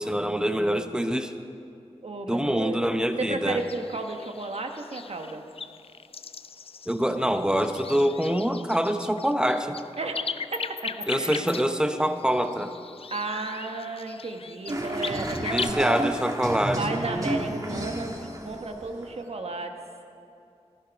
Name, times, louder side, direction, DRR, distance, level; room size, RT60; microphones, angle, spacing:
voice 1, 0.0-1.3 2.3-3.6 6.9-9.8 11.1-12.7 15.5-17.0, equal, 5° right, 8 dB, 0.8 m, -25 dB
voice 2, 2.0-2.8 3.2-5.4 10.0-11.5 13.1-15.8 16.8-19.7, right 3 dB, 65° right, 4 dB, 1.2 m, -33 dB
sound 1, 3.6-15.7, left 5 dB, 55° left, 0.4 m, -38 dB
sound 2, 14.7-19.2, right 1 dB, 30° right, 1.5 m, -31 dB
15.5 x 13.5 x 5.1 m, 2.6 s
wide cardioid pair, 95°, 11 cm